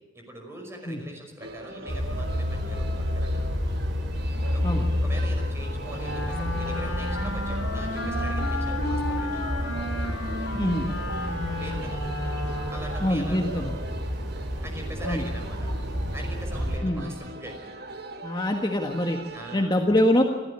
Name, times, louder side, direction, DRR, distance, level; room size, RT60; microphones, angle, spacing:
voice 1, 0.1-3.7 4.5-9.6 11.5-12.2 12.7-14.1 14.6-15.8 16.1-17.7 19.3-19.8, right 1 dB, 15° right, 2 dB, 5.5 m, -42 dB
sound 1, 1.4-19.6, right 2 dB, 55° right, 1.8 m, -41 dB
sound 2, 1.9-16.8, left 1 dB, 75° right, 5.0 m, -30 dB
Wind instrument woodwind instrument, 5.9-13.3, left 2 dB, 80° left, 6.8 m, -33 dB
voice 2, 10.6-10.9 13.0-13.7 15.0-15.2 16.8-17.1 18.2-19.2 19.5-20.2, left 1 dB, 20° left, 2 dB, 1.5 m, -24 dB
28.5 x 14.0 x 9.9 m, 1.4 s
head